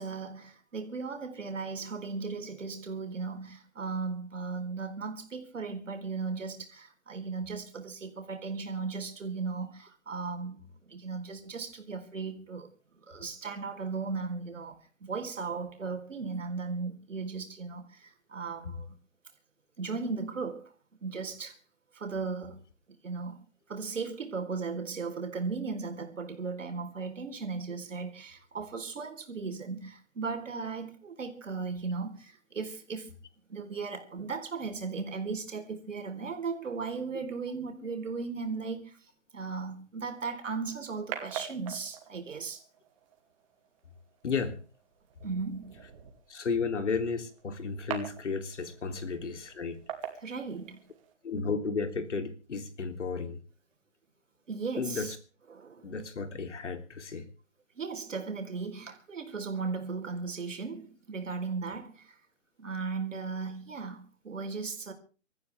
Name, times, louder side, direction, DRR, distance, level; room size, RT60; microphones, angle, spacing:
voice 1, 0.0-18.9 19.8-20.7 21.0-21.6 21.9-22.6 23.0-33.1 33.5-39.0 39.3-42.6 45.2-45.8 50.2-50.8 54.5-55.1 55.5-55.9 57.8-62.2 62.6-64.9, right 4 dB, 75° right, 4.2 m, -37 dB
sound 1, 40.1-51.1, right 9 dB, 25° right, 2.7 m, -45 dB
voice 2, 44.2-44.6 46.3-49.8 51.2-53.4 54.8-55.2 55.8-57.3, left 5 dB, 65° left, 3.4 m, -33 dB
25.5 x 14.0 x 3.5 m
hypercardioid pair, 165°, 38 cm